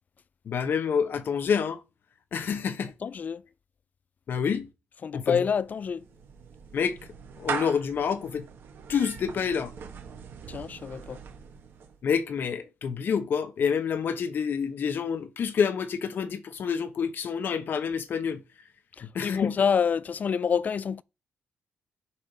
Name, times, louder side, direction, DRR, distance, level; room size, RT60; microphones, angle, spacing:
voice 1, 0.5-1.8 2.3-2.9 4.3-4.7 5.1-5.4 6.7-7.0 7.4-8.5 8.9-9.7 12.0-18.4 19.0-19.6, left 6 dB, 60° left, 0.8 m, -28 dB
voice 2, 3.0-3.4 5.0-6.0 10.5-11.2 19.2-21.0, left 6 dB, 45° left, 0.3 m, -27 dB
Clapping / Meow, 5.6-12.0, right 6 dB, 70° right, 1.3 m, -40 dB
8.4 x 5.2 x 4.1 m
cardioid pair, 110°, 4 cm